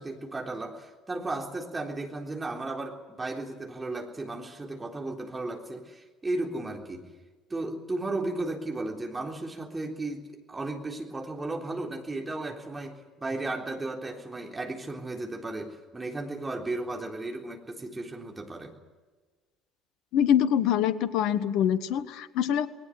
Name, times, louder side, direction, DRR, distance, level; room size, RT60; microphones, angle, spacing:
voice 1, 0.0-7.1 7.5-18.7, right 2 dB, 20° right, 1 dB, 3.7 m, -35 dB
voice 2, 20.1-22.7, left 9 dB, 60° left, 15 dB, 1.3 m, -24 dB
20.5 x 19.5 x 9.5 m, 1.3 s
figure-of-eight pair, 55°, 0 cm